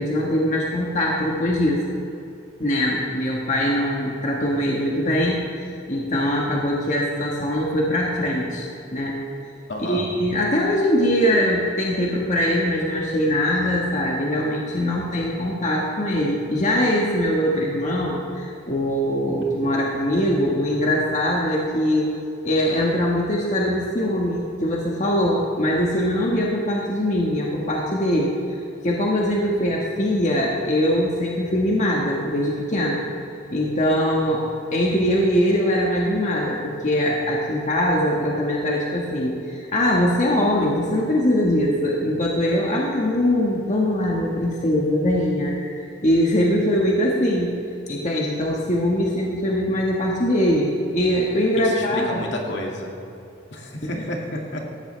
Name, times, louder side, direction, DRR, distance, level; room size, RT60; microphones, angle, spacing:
voice 1, 0.0-1.8 2.6-8.7 8.9-9.2 9.9-22.2 22.4-33.0 33.5-45.7 46.0-47.5 47.9-52.2 53.8-54.0, equal, 40° left, -3 dB, 1.5 m, -22 dB
voice 2, 9.7-10.2 51.6-53.1 53.5-54.6, left 1 dB, 65° left, 0 dB, 2.2 m, -31 dB
18.0 x 14.0 x 3.4 m, 2.7 s
head